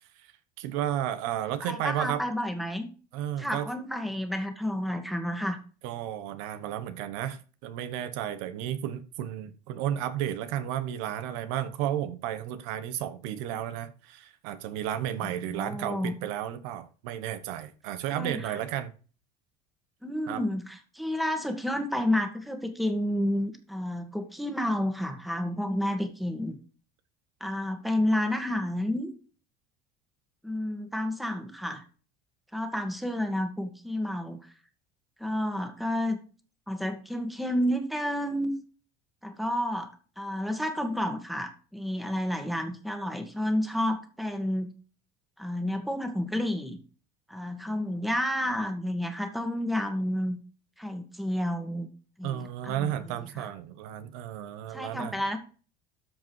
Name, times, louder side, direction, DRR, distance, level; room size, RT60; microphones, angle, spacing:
voice 1, 0.6-2.2 3.1-3.7 5.8-18.9 20.3-20.4 52.2-55.2, right 11 dB, 80° right, 1.3 m, -33 dB
voice 2, 1.6-2.9 3.4-5.6 15.2-16.1 18.1-18.6 20.0-26.6 27.4-29.1 30.4-31.8 32.5-34.4 35.2-36.2 36.7-38.5 39.2-44.7 45.4-46.8 47.3-50.4 50.8-51.9 52.2-53.5 54.7-55.4, left 1 dB, ahead, 1.8 m, -30 dB
13.5 x 5.3 x 4.7 m
cardioid pair, 140°, 18 cm